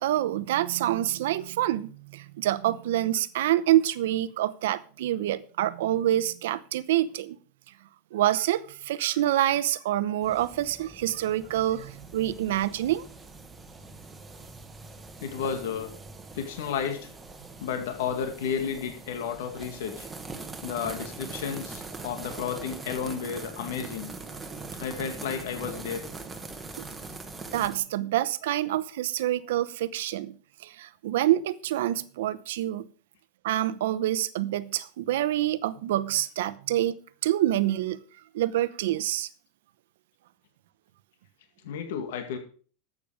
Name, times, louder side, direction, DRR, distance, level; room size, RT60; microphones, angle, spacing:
voice 1, 0.0-7.4 8.1-13.1 26.8-26.9 27.5-30.3 30.6-32.8 33.4-38.0 38.3-39.3, right 13 dB, 75° right, 0.8 m, -27 dB
sound 1, 10.2-27.8, right 3 dB, 10° right, 1.2 m, -42 dB
voice 2, 15.2-15.9 16.3-17.1 17.6-20.1 20.6-24.2 24.8-26.0 41.6-42.4, left 7 dB, 75° left, 2.1 m, -32 dB
12.5 x 8.6 x 5.1 m
supercardioid pair, 170°, 0 cm